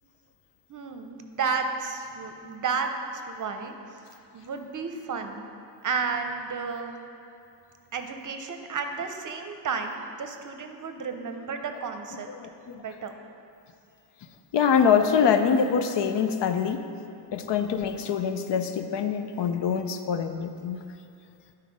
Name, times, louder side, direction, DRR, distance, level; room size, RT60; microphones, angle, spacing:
voice 1, 0.7-3.7 4.3-5.4 5.8-7.0 7.9-12.3 12.7-13.1, right 5 dB, 45° right, 5 dB, 0.6 m, -32 dB
voice 2, 12.3-12.8 14.5-16.9 17.3-20.8, left 7 dB, 80° left, 8 dB, 0.6 m, -24 dB
11.0 x 4.1 x 5.2 m, 2.6 s
wide cardioid pair, 140°, 42 cm